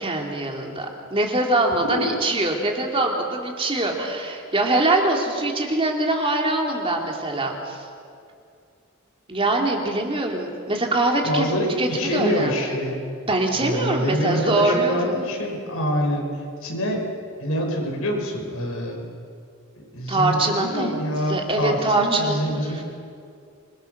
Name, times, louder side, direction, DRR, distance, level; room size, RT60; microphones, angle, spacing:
voice 1, 0.0-7.8 9.3-11.5 11.8-12.8 13.3-15.2 20.1-21.0 21.3-22.8, right 2 dB, 25° right, 1 dB, 2.9 m, -23 dB
voice 2, 11.2-13.0 13.5-16.3 16.6-17.0 17.4-19.0 19.9-22.8, equal, 85° left, 0 dB, 5.6 m, -25 dB
26.5 x 22.5 x 6.7 m, 2.4 s
head